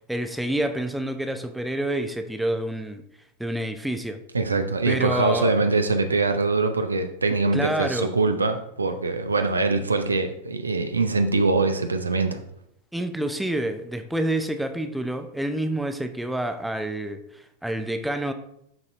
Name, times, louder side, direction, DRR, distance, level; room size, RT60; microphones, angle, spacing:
voice 1, 0.1-3.0 3.4-4.2 4.9-5.6 7.5-8.1 12.9-18.3, right 1 dB, 5° right, 7 dB, 0.5 m, -28 dB
voice 2, 4.3-12.4, right 3 dB, 75° right, 8 dB, 0.6 m, -23 dB
11.5 x 4.1 x 2.6 m, 0.73 s
figure-of-eight pair, 90°, 0 cm